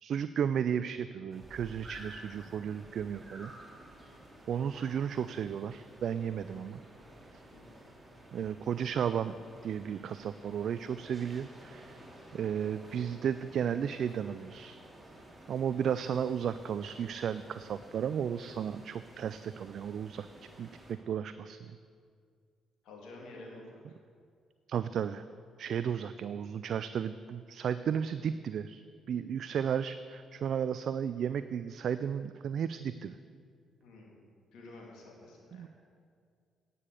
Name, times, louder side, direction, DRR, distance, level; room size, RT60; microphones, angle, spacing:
voice 1, 0.0-3.5 4.5-6.8 7.3-7.4 8.3-9.3 9.6-12.0 12.3-14.8 15.5-20.3 20.6-21.8 24.7-25.2 25.6-33.2 35.5-35.7, right 8 dB, 65° right, 13 dB, 0.3 m, -34 dB
sound 1, 1.3-20.9, right 1 dB, 20° right, 2.7 m, -53 dB
voice 2, 22.8-23.8 33.8-34.2 34.5-35.7, left 2 dB, 75° left, -1 dB, 2.5 m, -50 dB
9.7 x 6.7 x 8.4 m, 2.1 s
hypercardioid pair, 50°, 0 cm